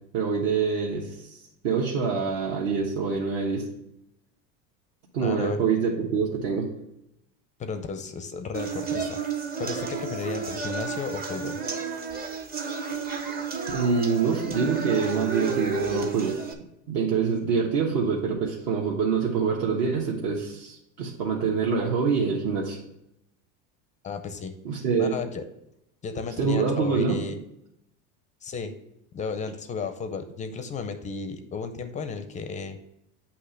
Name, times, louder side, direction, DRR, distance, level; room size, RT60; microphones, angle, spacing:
voice 1, 0.1-1.4 1.6-3.7 5.1-6.7 13.7-16.4 16.9-22.8 24.6-25.1 26.2-27.2, right 5 dB, 55° right, -3 dB, 1.2 m, -25 dB
voice 2, 5.2-5.6 7.6-9.2 9.6-11.6 24.0-24.5 25.0-25.4 26.0-27.4 28.4-28.7 29.1-32.8, left 5 dB, 20° left, 8 dB, 0.4 m, -33 dB
sound 1, 8.5-16.5, right 5 dB, 25° right, 0.6 m, -32 dB
8.3 x 2.9 x 5.6 m, 0.81 s
supercardioid pair, 140°, 41 cm